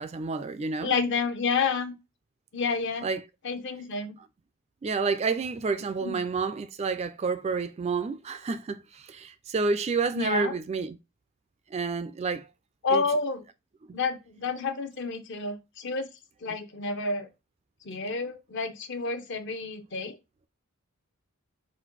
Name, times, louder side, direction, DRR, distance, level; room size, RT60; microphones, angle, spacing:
voice 1, 0.0-0.9 3.0-3.2 4.8-11.0 11.7-12.5 12.9-13.0 13.9-14.0, right 4 dB, 30° right, 0.3 m, -29 dB
voice 2, 0.8-2.0 2.5-3.1 3.4-4.2 6.0-6.2 10.1-10.5 12.8-13.4 13.9-16.1 16.4-17.3 17.8-20.2, left 4 dB, 55° left, 0.7 m, -29 dB
4.2 x 2.5 x 3.9 m
head